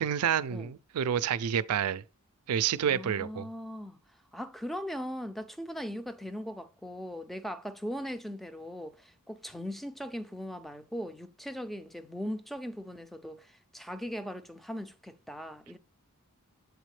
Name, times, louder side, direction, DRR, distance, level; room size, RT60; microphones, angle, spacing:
voice 1, 0.0-2.0 2.5-3.4, right 8 dB, 90° right, 0.4 m, -29 dB
voice 2, 2.8-4.0 4.3-15.8, equal, ahead, 0.4 m, -39 dB
8.1 x 4.1 x 3.2 m
head